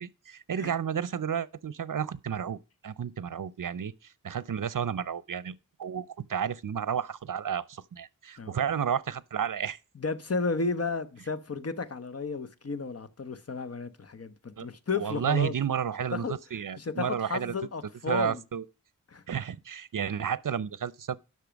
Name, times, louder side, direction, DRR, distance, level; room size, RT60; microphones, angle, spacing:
voice 1, 0.0-2.6 2.8-9.8 14.6-14.7 14.9-17.5 18.1-18.6 19.3-21.2, right 8 dB, 65° right, 0.7 m, -32 dB
voice 2, 9.9-15.5 16.1-16.4 16.8-18.4 19.1-19.2, left 4 dB, 45° left, 1.1 m, -33 dB
10.5 x 6.6 x 5.2 m
wide cardioid pair, 60°, 34 cm